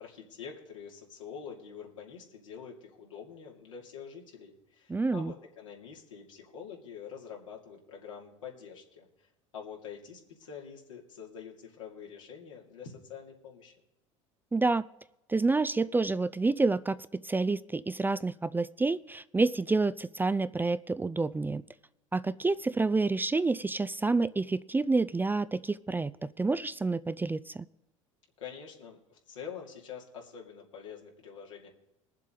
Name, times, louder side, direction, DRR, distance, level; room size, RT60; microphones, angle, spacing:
voice 1, 0.0-9.3 9.5-13.7 28.4-31.7, left 7 dB, 85° left, -2 dB, 2.7 m, -46 dB
voice 2, 4.9-5.3 14.5-14.8 15.3-21.6 22.1-27.6, right 3 dB, 10° right, 15 dB, 0.4 m, -28 dB
22.0 x 7.5 x 3.9 m, 0.92 s
hypercardioid pair, 75°, 16 cm